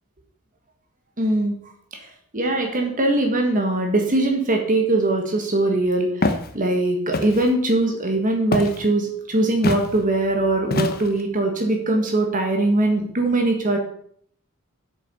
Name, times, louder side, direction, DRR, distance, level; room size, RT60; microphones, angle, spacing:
voice 1, 1.2-1.6 2.3-13.8, right 2 dB, 40° right, 2 dB, 1.6 m, -21 dB
Walk footsteps, 6.2-6.5 7.1-7.5 8.5-8.8 9.6-9.9 10.7-11.2, left 2 dB, 45° left, 1.1 m, -23 dB
8.2 x 7.1 x 5.6 m, 0.62 s
head